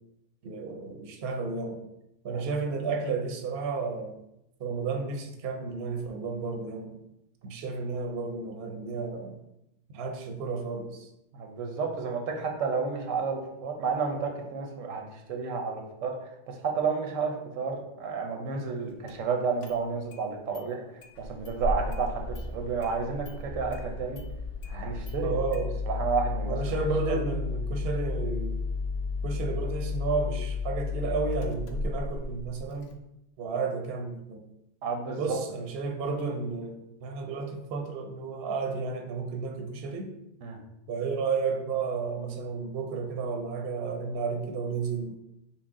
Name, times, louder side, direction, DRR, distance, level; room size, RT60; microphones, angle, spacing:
voice 1, 0.4-1.9 2.2-4.2 4.6-7.0 7.4-9.4 9.9-11.1 25.2-25.7 26.5-28.6 29.2-32.9 33.4-34.4 35.2-40.1 40.9-45.1, right 4 dB, 60° right, 3 dB, 0.8 m, -32 dB
voice 2, 11.3-20.8 21.2-24.2 24.7-25.4 25.9-26.6 27.1-27.2 34.8-35.4 40.4-40.6, right 5 dB, 85° right, 2 dB, 1.1 m, -31 dB
Engine starting, 19.1-19.2 19.6-20.2 20.5-20.6 21.0-32.9, left 4 dB, 75° left, 0.9 m, -33 dB
5.9 x 2.1 x 3.6 m, 0.84 s
omnidirectional pair, 1.3 m